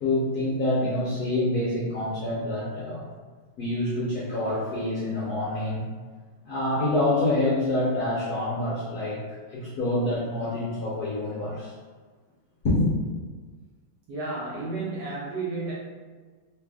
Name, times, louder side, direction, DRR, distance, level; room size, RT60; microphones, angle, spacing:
voice 1, 0.0-3.1 3.6-5.8 6.4-11.7 12.6-12.9, left 1 dB, 65° left, -7 dB, 1.0 m, -26 dB
voice 2, 14.1-15.7, right 3 dB, 70° right, -5 dB, 1.0 m, -32 dB
3.3 x 2.4 x 3.4 m, 1.4 s
omnidirectional pair, 2.3 m